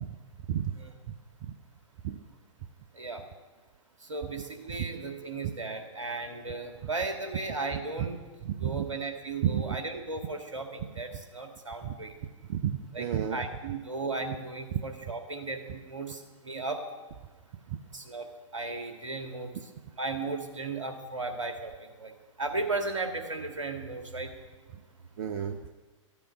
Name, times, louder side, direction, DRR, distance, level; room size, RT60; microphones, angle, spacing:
voice 1, 4.0-8.2 8.6-12.1 12.9-16.8 17.9-19.7 20.0-22.1 22.4-24.3, right 3 dB, 75° right, 4 dB, 2.3 m, -36 dB
voice 2, 8.4-8.8 9.4-9.8 11.8-11.9 12.5-13.4 25.2-25.7, right 9 dB, 45° right, 7 dB, 0.8 m, -31 dB
14.5 x 8.6 x 8.6 m, 1.3 s
figure-of-eight pair, 110°, 17 cm